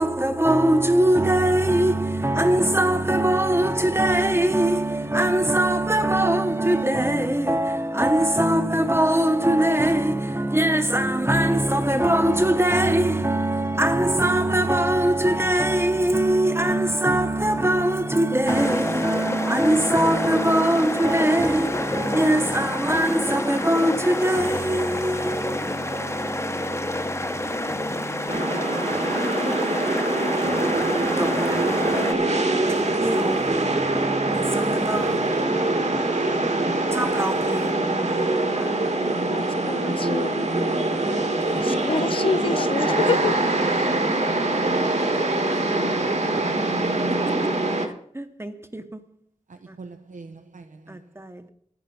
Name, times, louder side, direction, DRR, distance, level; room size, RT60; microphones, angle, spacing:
voice 1, 0.0-36.1 36.9-38.8 39.8-40.3 45.5-45.6 46.0-47.0 48.1-49.0 49.7-49.8 50.9-51.5, right 1 dB, 20° right, 0.9 m, -23 dB
sound 1, 18.5-32.1, left 1 dB, 20° left, 0.8 m, -29 dB
sound 2, 28.3-47.9, right 2 dB, 60° right, 1.5 m, -24 dB
voice 2, 34.4-38.2 42.8-43.0 49.8-50.8, right 4 dB, 80° right, 0.7 m, -40 dB
voice 3, 37.8-38.1 39.3-40.4 41.6-43.4 43.7-44.0, left 5 dB, 45° left, 0.4 m, -28 dB
10.0 x 9.5 x 5.6 m
wide cardioid pair, 80°, 13 cm